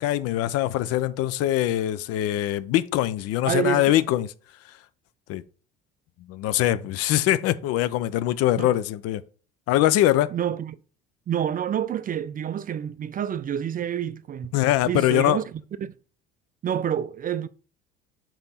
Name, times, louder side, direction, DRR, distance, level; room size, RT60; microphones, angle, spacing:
voice 1, 0.0-4.3 4.7-4.8 5.3-5.4 6.3-9.2 9.7-10.3 14.5-15.4, left 13 dB, 55° left, 0.5 m, -23 dB
voice 2, 3.5-4.0 8.6-8.7 10.3-10.8 11.3-14.5 14.8-15.4 15.8-16.0 16.6-17.5, right 9 dB, 30° right, 0.4 m, -28 dB
5.1 x 4.5 x 4.2 m
figure-of-eight pair, 55°, 30 cm